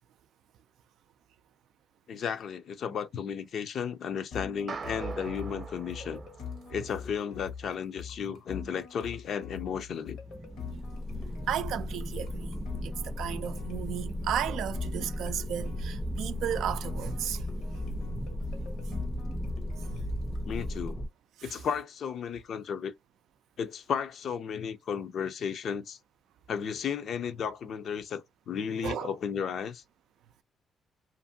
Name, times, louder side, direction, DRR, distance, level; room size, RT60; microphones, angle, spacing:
voice 1, 2.1-6.2 6.7-10.2 20.5-21.0 21.4-22.9 23.6-26.0 26.5-29.8, left 7 dB, 65° left, 0.5 m, -34 dB
sound 1, 4.3-21.0, left 6 dB, 80° left, 1.0 m, -44 dB
sound 2, 4.7-7.2, right 4 dB, 45° right, 0.7 m, -41 dB
sound 3, 10.2-21.1, equal, 10° right, 0.4 m, -36 dB
voice 2, 11.5-12.5 12.8-17.4 21.4-21.6 28.8-29.1, right 10 dB, 80° right, 0.3 m, -34 dB
2.6 x 2.5 x 2.6 m
cardioid pair, 90°, 0 cm